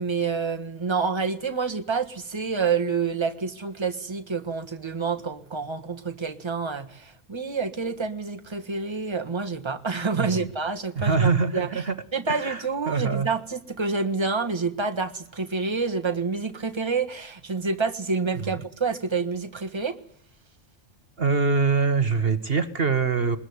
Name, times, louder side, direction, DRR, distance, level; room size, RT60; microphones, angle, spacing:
voice 1, 0.0-11.8 12.1-20.0, right 4 dB, 20° right, 5 dB, 1.5 m, -28 dB
voice 2, 10.2-10.5 10.9-12.0 12.3-13.3 18.3-18.6 21.2-23.4, right 4 dB, 50° right, 10 dB, 1.3 m, -24 dB
21.0 x 20.5 x 9.6 m, 0.65 s
omnidirectional pair, 1.4 m